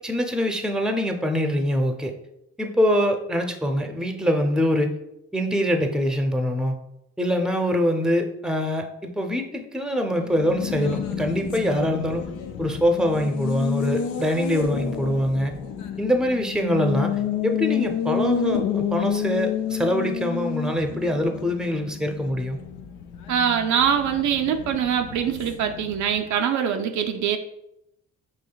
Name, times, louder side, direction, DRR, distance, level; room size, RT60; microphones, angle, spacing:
voice 1, 0.0-2.1 2.6-4.9 5.3-6.7 7.2-12.3 12.6-15.5 16.0-17.2 17.4-22.6, equal, ahead, 4 dB, 0.6 m, -24 dB
Race car auto racing, 10.1-26.4, left 8 dB, 80° left, 0.5 m, -30 dB
voice 2, 23.3-27.4, right 8 dB, 70° right, 5 dB, 0.5 m, -23 dB
5.6 x 3.1 x 2.3 m, 0.83 s
supercardioid pair, 55°, 30 cm